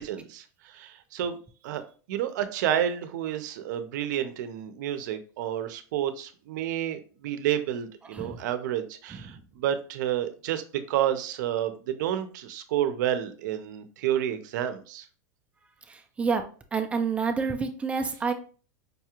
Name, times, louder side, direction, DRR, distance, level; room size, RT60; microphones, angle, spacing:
voice 1, 0.0-1.4 1.6-1.8 2.1-10.6 10.9-15.1, right 11 dB, 70° right, 9 dB, 0.6 m, -30 dB
voice 2, 16.7-18.3, right 5 dB, 10° right, 5 dB, 0.4 m, -27 dB
5.3 x 2.4 x 2.9 m, 0.40 s
supercardioid pair, 150°, 10 cm